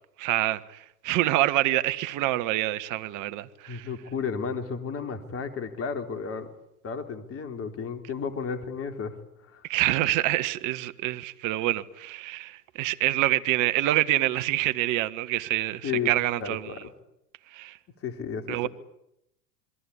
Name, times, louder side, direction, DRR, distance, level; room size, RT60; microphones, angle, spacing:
voice 1, 0.2-3.9 9.7-16.8 17.5-17.8 18.5-18.7, right 15 dB, 40° right, 1.6 m, -26 dB
voice 2, 3.7-6.5 6.8-9.1 9.5-9.6 15.8-16.1 16.4-16.9 18.0-18.7, left 6 dB, 30° left, 3.8 m, -33 dB
27.0 x 22.0 x 8.7 m
hypercardioid pair, 90°, 45 cm